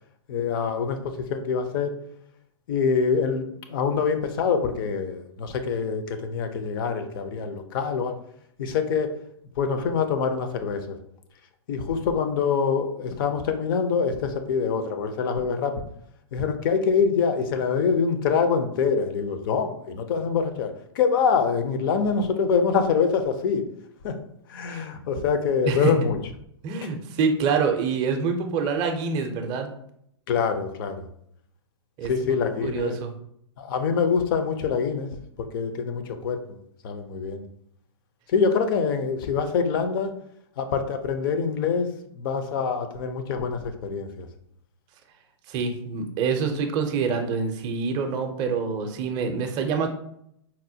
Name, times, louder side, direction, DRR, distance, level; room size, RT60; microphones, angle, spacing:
voice 1, 0.3-1.9 2.7-8.1 8.6-9.1 9.6-11.0 11.7-15.8 16.3-23.6 24.0-24.2 24.5-26.2 26.8-26.9 30.3-31.0 32.0-33.0 33.6-35.1 35.4-36.4 36.8-37.4 38.3-40.1 40.6-44.3, left 6 dB, 50° left, 8 dB, 0.5 m, -25 dB
voice 2, 25.7-26.1 26.6-29.7 32.0-32.1 32.6-33.1 45.5-49.9, right 5 dB, 25° right, 5 dB, 0.5 m, -26 dB
4.1 x 2.1 x 2.7 m, 0.71 s
hypercardioid pair, 140°, 15 cm